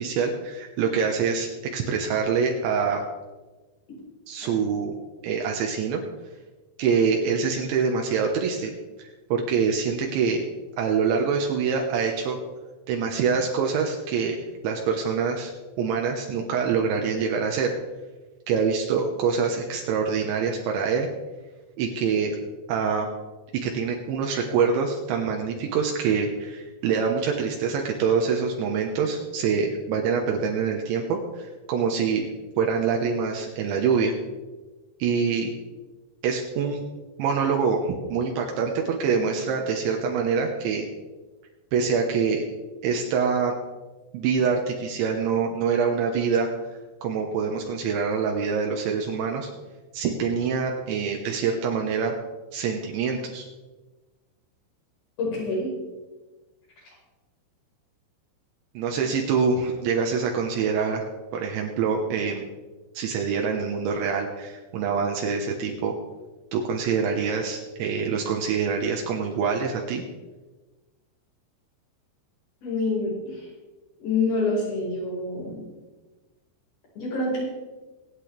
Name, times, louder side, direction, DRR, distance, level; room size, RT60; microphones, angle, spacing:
voice 1, 0.0-3.0 4.3-4.9 5.2-6.0 6.8-8.7 9.0-10.4 10.8-12.4 12.9-15.5 15.8-17.7 18.5-21.1 21.8-22.4 22.7-23.1 23.5-32.2 32.6-34.1 35.0-35.5 36.2-36.8 37.2-40.9 41.7-42.4 42.8-43.5 44.1-46.5 47.0-49.5 49.9-52.1 52.5-53.5 58.7-61.1 61.3-62.4 62.9-65.9 66.5-70.0, right 6 dB, 80° right, 1 dB, 3.3 m, -25 dB
voice 2, 55.2-55.7 72.6-73.1 74.0-75.6 77.0-77.4, left 3 dB, 50° left, -4 dB, 6.3 m, -26 dB
24.5 x 9.1 x 3.4 m, 1.2 s
omnidirectional pair, 5.5 m